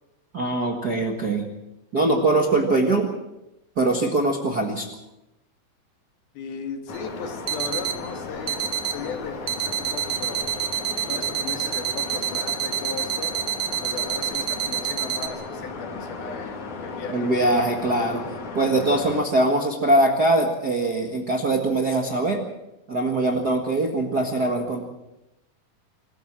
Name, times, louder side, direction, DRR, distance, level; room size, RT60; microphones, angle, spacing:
voice 1, 0.3-1.4 1.9-3.1 3.8-4.9 17.1-18.3 18.5-22.4 22.9-24.8, right 2 dB, 40° right, 1 dB, 1.4 m, -22 dB
voice 2, 6.3-8.6 8.9-10.5 11.1-13.4 13.8-17.3, left 6 dB, 75° left, 5 dB, 3.9 m, -36 dB
sound 1, 6.9-19.2, left 3 dB, 55° left, 3.9 m, -36 dB
sound 2, 6.9-7.0 7.5-8.0 8.5-9.0 9.5-15.3, right 9 dB, 70° right, 3.0 m, -28 dB
25.5 x 14.5 x 7.5 m, 0.92 s
omnidirectional pair, 4.4 m